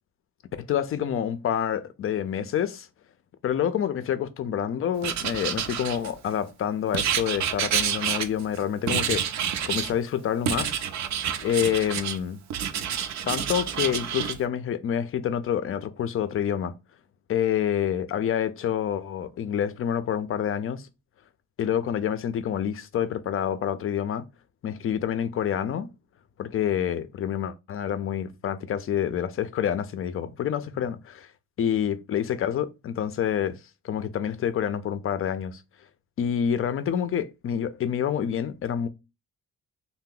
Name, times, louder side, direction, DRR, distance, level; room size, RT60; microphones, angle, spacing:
voice 1, 0.6-2.9 3.4-10.8 11.4-12.4 13.2-16.7 17.3-20.9 21.6-24.2 24.6-25.9 26.4-31.3 31.6-33.6 33.8-35.6 36.2-38.9, left 9 dB, 45° left, 0.4 m, -27 dB
Writing, 5.0-6.3 6.9-8.6 8.9-9.9 10.5-12.2 12.5-14.4, right 9 dB, 65° right, 0.5 m, -28 dB
2.8 x 2.0 x 3.6 m
cardioid pair, 90°, 30 cm